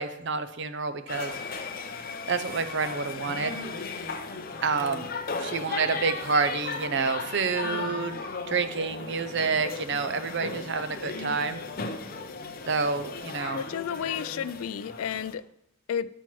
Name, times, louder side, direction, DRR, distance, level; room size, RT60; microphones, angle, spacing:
voice 1, 0.0-1.7 2.3-3.6 4.6-5.1 5.4-8.2 8.5-11.6 12.7-13.7, right 4 dB, 55° right, 10 dB, 0.6 m, -28 dB
sound 1, 1.1-15.3, left 4 dB, 45° left, 0.7 m, -36 dB
voice 2, 13.5-15.4 15.9-16.1, left 8 dB, 75° left, 17 dB, 0.3 m, -32 dB
9.1 x 4.4 x 6.1 m, 0.78 s
head